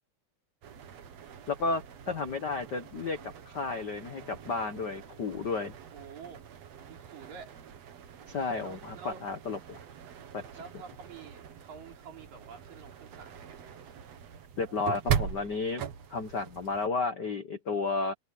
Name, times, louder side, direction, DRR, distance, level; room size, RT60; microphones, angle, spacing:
sound 1, 0.6-16.9, right 8 dB, 55° right, 2.6 m, -40 dB
voice 1, 1.5-5.7 8.3-9.8 10.3-10.4 14.6-15.8 16.1-18.1, left 4 dB, 65° left, 1.0 m, -32 dB
voice 2, 5.9-6.4 6.7-7.6 8.6-9.2 10.6-14.0, right 6 dB, 75° right, 5.5 m, -48 dB
omnidirectional pair, 3.9 m